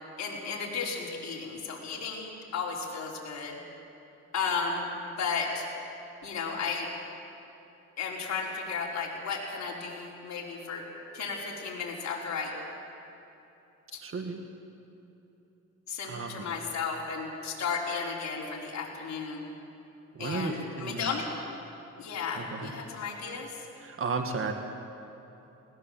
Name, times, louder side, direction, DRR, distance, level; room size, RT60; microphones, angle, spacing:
voice 1, 0.2-3.6 4.3-4.9 5.2-5.7 6.2-6.9 8.0-10.8 11.1-12.5 13.9-14.0 15.9-19.4 20.2-21.3 22.0-23.6, left 5 dB, 60° left, -3 dB, 4.8 m, -34 dB
voice 2, 14.0-14.4 16.0-16.5 20.2-21.1 22.4-22.7 23.8-24.5, right 4 dB, 45° right, 5 dB, 1.8 m, -34 dB
20.5 x 18.5 x 7.8 m, 3.0 s
cardioid pair, 90°, 30 cm